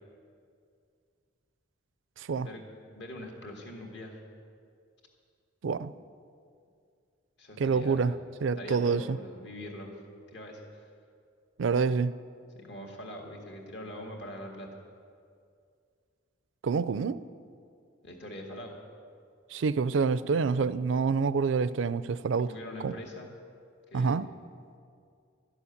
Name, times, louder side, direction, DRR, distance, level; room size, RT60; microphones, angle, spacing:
voice 1, 2.2-2.5 5.6-5.9 7.6-8.1 8.4-9.2 11.6-12.1 16.6-17.2 19.5-22.5 22.8-22.9 23.9-24.3, right 5 dB, 70° right, 16 dB, 0.4 m, -27 dB
voice 2, 2.9-4.2 7.4-8.1 8.6-9.9 10.3-10.8 12.6-14.7 18.0-18.8 22.4-23.3 23.9-24.2, left 1 dB, 60° left, 1 dB, 1.9 m, -43 dB
13.0 x 7.1 x 9.7 m, 2.3 s
head